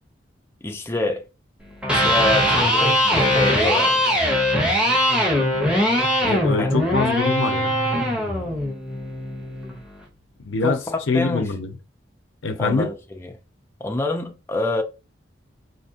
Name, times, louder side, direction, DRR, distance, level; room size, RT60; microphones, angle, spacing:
voice 1, 0.6-1.2 1.9-4.2 6.6-6.7 10.6-11.5 12.6-13.3 13.8-14.8, left 2 dB, 15° left, 0.5 m, -26 dB
Electric guitar, 1.7-9.8, equal, 5° right, 1.0 m, -21 dB
voice 2, 6.2-7.7 10.4-10.8 11.1-11.7 12.4-12.9, left 4 dB, 90° left, 0.6 m, -24 dB
4.3 x 2.8 x 2.8 m
head